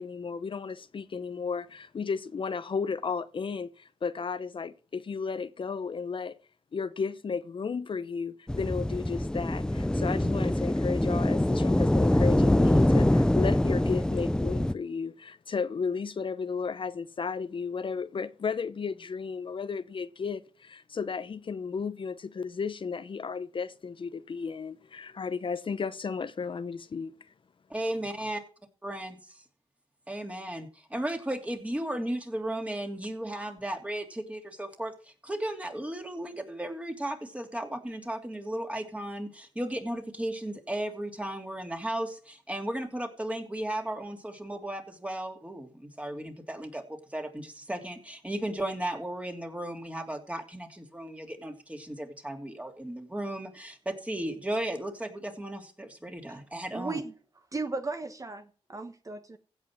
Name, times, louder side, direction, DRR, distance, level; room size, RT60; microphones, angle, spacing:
voice 1, 0.0-6.4 6.7-27.1, left 5 dB, 50° left, 0.8 m, -34 dB
sound 1, 8.5-14.7, left 1 dB, 5° left, 0.5 m, -24 dB
voice 2, 27.7-28.4 28.8-29.1 30.1-57.0, right 1 dB, 10° right, 2.9 m, -35 dB
voice 3, 56.7-57.1 57.5-59.4, right 3 dB, 30° right, 1.2 m, -36 dB
16.0 x 5.5 x 7.5 m
cardioid pair, 70°, 11 cm